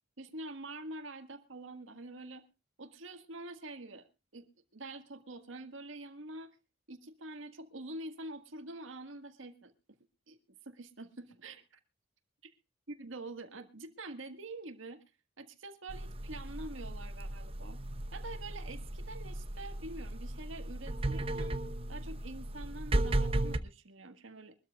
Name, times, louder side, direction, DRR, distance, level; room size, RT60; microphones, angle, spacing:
voice 1, 0.2-2.4 2.8-4.1 4.3-4.5 4.7-6.6 6.9-9.7 10.3-10.4 10.6-11.6 13.0-15.0 15.4-17.8 18.1-21.6 21.9-24.6, right 2 dB, 80° right, 8 dB, 1.7 m, -46 dB
sound 1, 15.9-23.6, right 1 dB, 30° right, 0.8 m, -35 dB
23.5 x 13.0 x 2.4 m, 0.28 s
head